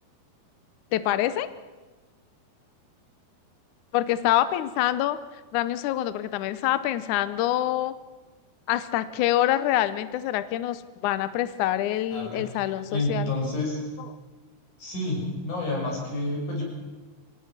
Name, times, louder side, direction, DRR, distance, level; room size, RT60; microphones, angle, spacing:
voice 1, 0.9-1.5 3.9-5.2 5.5-7.9 8.7-13.3 14.0-14.1, left 13 dB, 85° left, 14 dB, 1.7 m, -26 dB
voice 2, 12.1-12.4 12.9-13.8 14.8-16.6, left 2 dB, 50° left, -2 dB, 8.0 m, -29 dB
23.5 x 18.0 x 7.4 m, 1.3 s
omnidirectional pair, 4.6 m